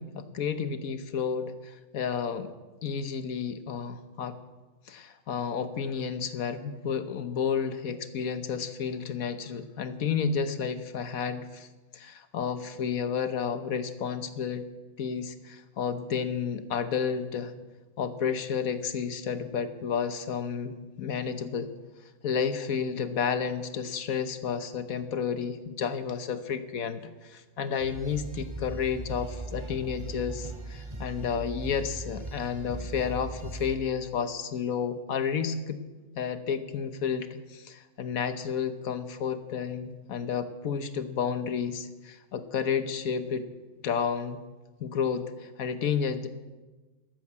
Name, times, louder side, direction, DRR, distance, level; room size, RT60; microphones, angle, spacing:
voice 1, 0.0-2.5 2.8-4.4 4.9-11.7 11.9-14.6 15.0-17.5 18.0-21.7 22.2-35.8 36.2-43.4 43.8-44.4 44.8-46.3, left 7 dB, 75° left, 11 dB, 1.4 m, -31 dB
sound 1, 27.8-33.7, right 2 dB, 20° right, 2.0 m, -39 dB
13.0 x 12.5 x 8.5 m, 1.2 s
omnidirectional pair, 1.5 m